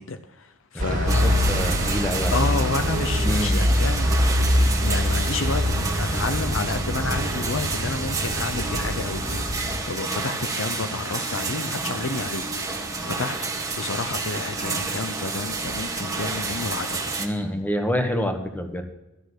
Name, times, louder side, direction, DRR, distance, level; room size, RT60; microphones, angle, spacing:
voice 1, 0.0-1.6 2.3-12.8 13.1-17.0, left 3 dB, 70° left, 9 dB, 0.8 m, -31 dB
voice 2, 0.7-2.4 3.2-3.6 17.2-18.8, left 1 dB, 10° left, 5 dB, 1.3 m, -27 dB
sound 1, 0.8-9.8, equal, 45° right, 2.4 m, -24 dB
sound 2, 1.1-17.3, right 3 dB, 15° right, 1.5 m, -30 dB
13.5 x 6.4 x 8.1 m, 0.98 s
head